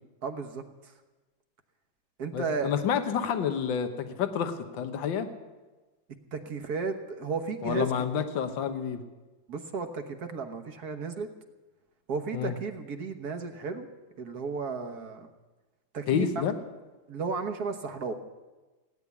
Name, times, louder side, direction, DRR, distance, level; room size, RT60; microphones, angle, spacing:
voice 1, 0.2-0.9 2.2-2.7 6.3-7.9 9.5-11.3 12.1-13.9 14.2-15.3 15.9-16.4 17.1-18.1, right 4 dB, 60° right, 6 dB, 1.6 m, -34 dB
voice 2, 2.3-5.3 7.6-9.0 12.3-12.6 16.1-16.5, left 8 dB, 80° left, 8 dB, 1.7 m, -29 dB
17.0 x 9.7 x 8.3 m, 1.2 s
omnidirectional pair, 2.0 m